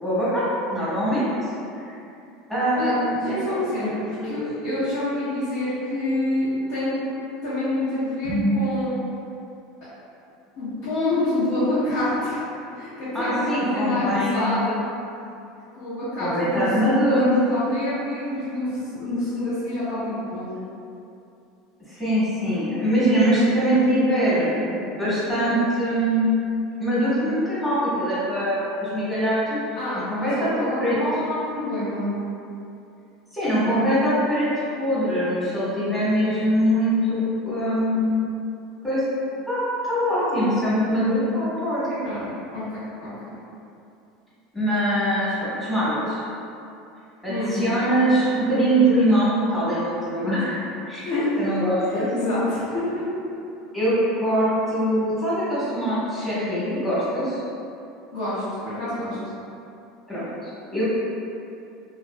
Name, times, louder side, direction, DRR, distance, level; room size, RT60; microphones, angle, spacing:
voice 1, 0.0-0.4 0.7-1.3 2.5-3.4 4.2-4.4 13.1-14.6 16.2-17.4 21.9-26.4 26.8-29.6 29.9-30.5 30.8-31.0 33.3-34.5 34.8-38.3 38.8-39.0 39.5-42.0 44.5-46.2 47.2-51.1 51.4-52.1 53.7-57.4 60.1-60.8, equal, 10° left, -12 dB, 1.2 m, -23 dB
voice 2, 2.7-7.0 7.4-9.0 10.6-12.4 12.7-14.8 15.7-20.6 29.8-32.1 42.0-42.2 42.5-43.3 47.3-47.6 47.9-48.0 51.0-51.4 51.9-53.1 58.1-59.2, left 1 dB, 65° left, -16 dB, 1.1 m, -27 dB
2.9 x 2.4 x 2.2 m, 2.7 s
supercardioid pair, 130°, 0 cm